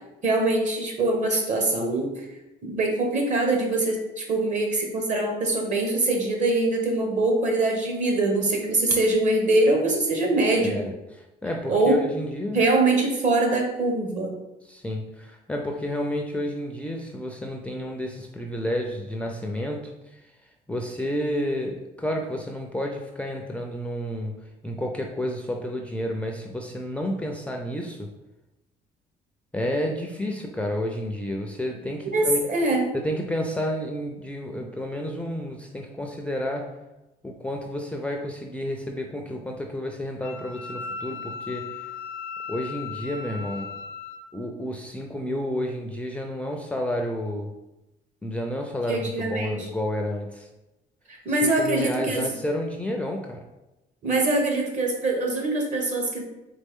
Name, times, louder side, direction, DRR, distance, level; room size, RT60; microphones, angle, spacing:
voice 1, 0.2-2.2 2.6-10.8 11.7-12.1 12.5-14.3 32.1-32.9 48.9-49.6 51.1-52.3 54.0-56.2, right 2 dB, 45° right, 1 dB, 1.2 m, -23 dB
voice 2, 10.6-10.9 11.4-12.6 14.7-24.4 24.6-28.1 29.5-32.4 32.9-36.7 37.2-41.9 42.5-43.7 44.3-47.5 48.2-50.5 51.3-53.4, left 1 dB, 5° left, 1 dB, 0.4 m, -30 dB
Wind instrument woodwind instrument, 40.2-44.2, left 5 dB, 70° left, 0.6 m, -37 dB
4.2 x 3.3 x 3.6 m, 0.97 s
cardioid pair, 110°, 17 cm